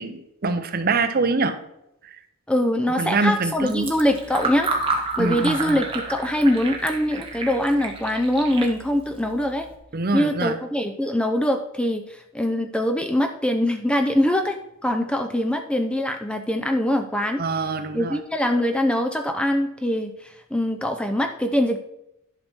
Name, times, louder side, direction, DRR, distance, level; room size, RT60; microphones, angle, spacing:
voice 1, 0.0-1.6 2.0-2.2 3.0-3.9 5.2-5.8 9.9-10.6 17.4-18.2, right 3 dB, 40° right, 9 dB, 0.7 m, -24 dB
voice 2, 2.5-4.7 5.2-9.7 10.1-14.6 14.8-17.4 17.9-21.8, left 1 dB, 5° left, 6 dB, 0.4 m, -23 dB
Fill (with liquid), 3.6-9.8, right 3 dB, 25° right, 1.3 m, -31 dB
11.0 x 6.0 x 4.4 m, 0.84 s
head